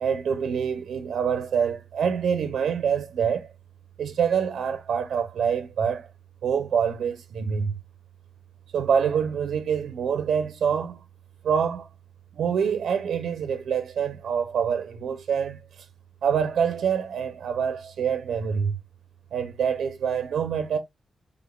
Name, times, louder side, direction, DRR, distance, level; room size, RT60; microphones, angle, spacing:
voice 1, 0.0-3.5 4.0-6.1 6.4-7.8 8.7-11.0 11.4-11.9 12.4-15.6 16.2-18.8 19.3-20.8, right 7 dB, 85° right, 0.6 m, -26 dB
3.9 x 3.4 x 2.3 m
wide cardioid pair, 150°, 0 cm